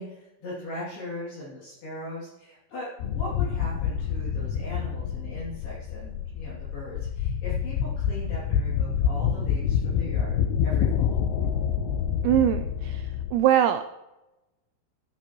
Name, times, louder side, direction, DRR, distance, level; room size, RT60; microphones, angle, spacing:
voice 1, 0.0-11.1, left 1 dB, 55° left, -7 dB, 4.4 m, -39 dB
sound 1, 3.0-13.4, left 8 dB, 85° left, 3.1 m, -27 dB
voice 2, 12.2-14.0, right 11 dB, 85° right, 9 dB, 2.6 m, -23 dB
13.5 x 12.0 x 3.0 m, 0.96 s
omnidirectional pair, 5.7 m